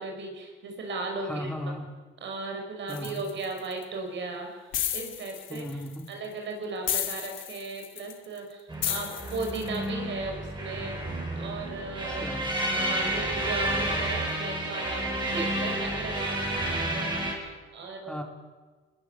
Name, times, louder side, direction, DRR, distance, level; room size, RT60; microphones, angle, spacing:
voice 1, 0.0-1.5 2.2-4.6 4.9-5.7 6.1-11.0 11.4-12.3 12.6-17.1 17.4-18.2, right 3 dB, 70° right, 3 dB, 6.0 m, -36 dB
voice 2, 1.2-1.9 2.9-3.3 5.5-6.1 12.1-12.6 17.8-18.2, left 1 dB, 5° left, 3 dB, 3.0 m, -37 dB
sound 1, 2.9-3.8 4.7-6.1 6.9-8.4 8.8-9.8, left 11 dB, 75° left, 2.1 m, -32 dB
sound 2, 8.7-17.3, right 1 dB, 25° right, 6.8 m, -30 dB
21.5 x 21.5 x 7.5 m, 1.4 s
cardioid pair, 90°, 20 cm